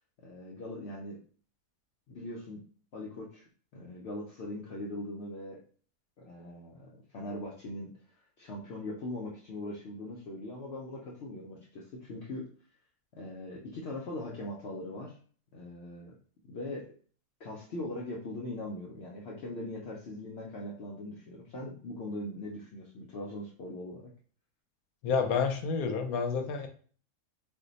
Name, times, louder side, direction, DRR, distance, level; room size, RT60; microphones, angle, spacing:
voice 1, 0.2-1.2 2.1-2.6 2.9-5.6 6.2-7.9 8.4-12.5 13.1-15.2 15.5-16.1 16.5-16.9 17.4-24.1, left 1 dB, 60° left, -3 dB, 0.7 m, -41 dB
voice 2, 25.0-26.7, left 5 dB, 80° left, 5 dB, 1.0 m, -29 dB
2.6 x 2.2 x 3.8 m, 0.43 s
omnidirectional pair, 1.5 m